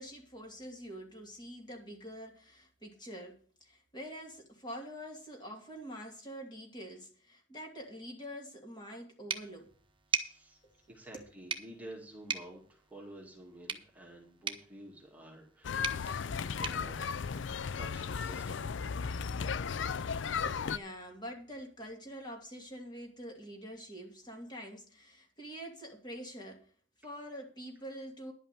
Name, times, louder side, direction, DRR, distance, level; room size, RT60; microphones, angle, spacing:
voice 1, 0.0-9.8 11.1-11.2 20.4-26.7 27.0-28.3, equal, 20° left, 2.9 m, -46 dB
sound 1, 9.3-18.0, right 6 dB, 25° right, 1.1 m, -42 dB
voice 2, 10.1-10.6 10.9-17.1 17.4-18.6, right 1 dB, 10° right, 2.2 m, -51 dB
sound 2, 15.6-20.8, left 6 dB, 65° left, 0.5 m, -35 dB
11.0 x 5.7 x 8.9 m
head